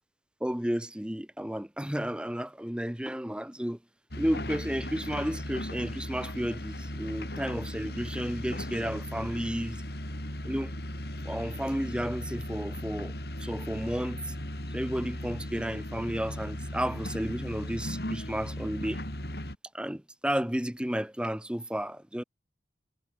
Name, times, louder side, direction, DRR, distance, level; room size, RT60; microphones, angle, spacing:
voice 1, 0.4-3.8 4.2-9.8 10.4-10.7 11.2-13.1 13.4-14.3 14.7-19.0 19.7-22.2, equal, 5° right, 0.7 m, -32 dB
sound 1, 4.1-19.6, left 1 dB, 65° left, 5.7 m, -37 dB
head